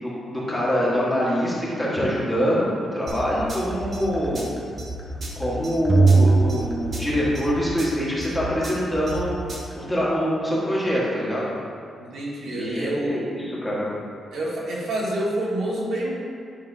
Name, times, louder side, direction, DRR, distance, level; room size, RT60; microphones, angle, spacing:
voice 1, 0.0-4.4 5.3-9.3 9.7-11.5 12.4-13.8, equal, 5° left, -8 dB, 1.4 m, -24 dB
sound 1, 3.1-9.7, right 1 dB, 30° right, 1.0 m, -34 dB
sound 2, 5.9-7.7, right 3 dB, 15° right, 0.4 m, -19 dB
voice 2, 12.0-13.3 14.3-16.2, right 1 dB, 85° right, -6 dB, 1.7 m, -28 dB
9.4 x 5.2 x 2.7 m, 2.4 s
wide cardioid pair, 175°, 0 cm